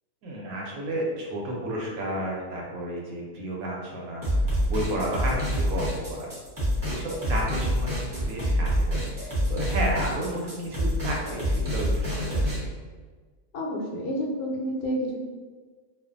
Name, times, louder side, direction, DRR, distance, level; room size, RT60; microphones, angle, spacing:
voice 1, 0.2-4.2 4.7-6.3 6.9-12.7, right 1 dB, 70° right, -2 dB, 1.0 m, -32 dB
sound 1, 4.2-12.6, equal, 20° right, 0.5 m, -26 dB
voice 2, 13.5-15.2, equal, 80° left, -2 dB, 1.1 m, -29 dB
2.5 x 2.4 x 2.4 m, 1.4 s
omnidirectional pair, 1.6 m